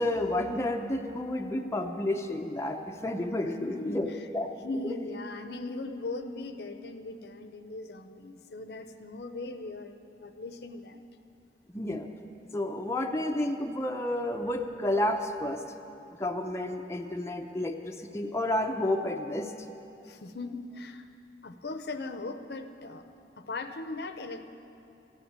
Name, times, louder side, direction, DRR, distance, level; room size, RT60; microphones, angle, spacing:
voice 1, 0.0-4.5 4.8-5.0 11.7-12.1 12.5-15.6 16.2-19.5, left 1 dB, 15° left, 3 dB, 0.6 m, -31 dB
voice 2, 3.6-4.0 4.6-11.0 20.0-21.1 21.4-23.0 23.4-24.5, left 2 dB, 65° left, 8 dB, 0.8 m, -39 dB
14.0 x 9.9 x 8.8 m, 2.7 s
head